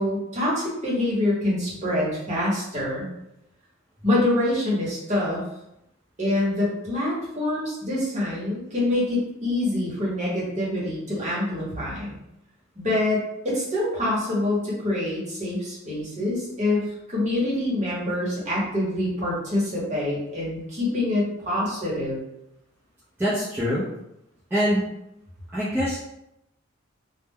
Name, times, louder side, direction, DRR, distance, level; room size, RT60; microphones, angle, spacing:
voice 1, 0.0-3.1 4.0-5.4 6.2-12.2 12.7-22.2, left 1 dB, 35° right, -6 dB, 1.0 m, -25 dB
voice 2, 23.2-23.8 24.5-24.8 25.5-26.0, equal, 10° right, -11 dB, 0.5 m, -24 dB
2.2 x 2.2 x 3.4 m, 0.84 s
head